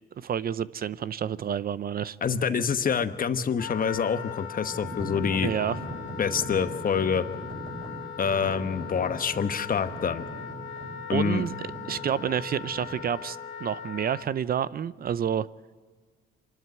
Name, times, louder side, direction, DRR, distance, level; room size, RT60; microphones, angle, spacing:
voice 1, 0.2-2.2 5.4-5.8 11.1-11.5 11.9-15.5, right 8 dB, 50° right, 17 dB, 0.6 m, -29 dB
voice 2, 2.2-5.5 6.2-7.2 8.2-10.2 11.1-11.4, left 6 dB, 45° left, 11 dB, 1.1 m, -26 dB
Wind instrument woodwind instrument, 3.6-14.3, left 8 dB, 85° left, 1.4 m, -39 dB
sound 1, 4.7-13.1, right 1 dB, 25° right, 6.9 m, -40 dB
25.5 x 12.5 x 9.4 m, 1.5 s
cardioid pair, 90°, 20 cm